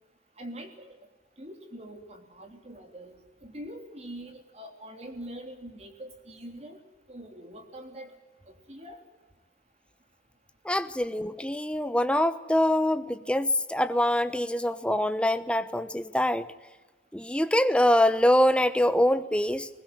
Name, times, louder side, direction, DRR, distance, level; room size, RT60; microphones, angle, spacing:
voice 1, 0.4-1.0 1.4-6.8 7.1-8.1 8.7-9.0, right 1 dB, 35° right, 5 dB, 3.3 m, -43 dB
voice 2, 10.6-16.5 17.1-19.7, left 1 dB, 5° left, 11 dB, 0.9 m, -24 dB
21.0 x 20.0 x 9.4 m, 1.1 s
head